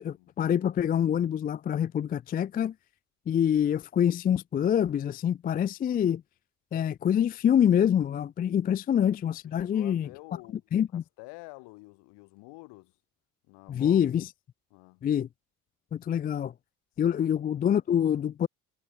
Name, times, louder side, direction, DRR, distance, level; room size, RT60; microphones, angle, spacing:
voice 1, 0.0-2.7 3.3-6.2 6.7-10.1 10.7-11.0 13.7-14.3 15.0-15.3 15.9-16.5 17.0-18.5, left 9 dB, 20° left, 0.4 m, -26 dB
voice 2, 9.4-10.6 10.9-13.0 13.5-14.0 14.7-15.0 17.0-17.2, left 27 dB, 65° left, 6.5 m, -49 dB
figure-of-eight pair, 60°, 46 cm